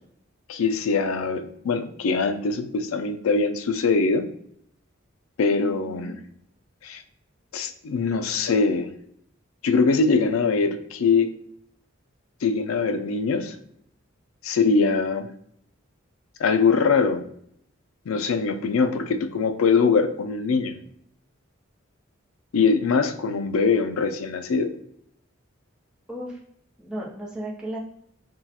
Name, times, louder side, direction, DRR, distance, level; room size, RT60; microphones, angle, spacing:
voice 1, 0.5-4.3 5.4-6.2 6.8-7.0 7.5-8.9 9.6-11.3 12.4-13.6 14.4-15.3 16.4-17.2 18.1-20.8 22.5-24.7, left 4 dB, 85° left, 8 dB, 0.4 m, -22 dB
voice 2, 5.6-6.2 26.1-26.4 26.8-27.8, right 1 dB, 5° right, -4 dB, 0.7 m, -35 dB
5.9 x 2.3 x 2.8 m, 0.68 s
head